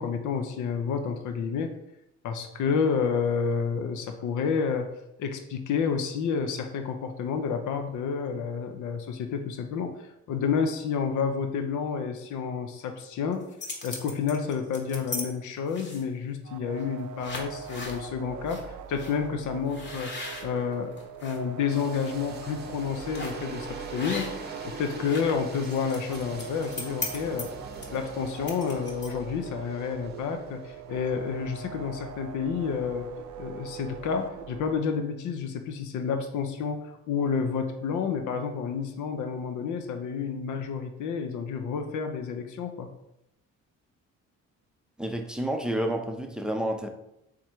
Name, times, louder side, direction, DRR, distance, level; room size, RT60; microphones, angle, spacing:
voice 1, 0.0-1.7 2.2-4.9 5.2-9.9 10.3-13.5 13.8-20.1 20.4-20.9 21.2-24.3 24.6-27.5 27.9-33.1 33.4-42.9, left 6 dB, 75° left, 0.7 m, -30 dB
sound 1, 13.3-15.2 15.7-16.2 16.8-16.9 17.2-18.0 18.5-18.6 19.0-19.1 19.7-21.4 21.8-22.1 23.1-23.5 23.9-24.5 24.8-29.3, left 3 dB, 35° left, 1.0 m, -38 dB
sound 2, 16.4-34.7, right 7 dB, 75° right, 0.5 m, -42 dB
sound 3, 21.7-31.5, right 3 dB, 35° right, 0.7 m, -44 dB
voice 2, 45.0-46.9, right 1 dB, 5° right, 0.5 m, -29 dB
3.7 x 3.1 x 4.4 m
cardioid pair, 90°, 30 cm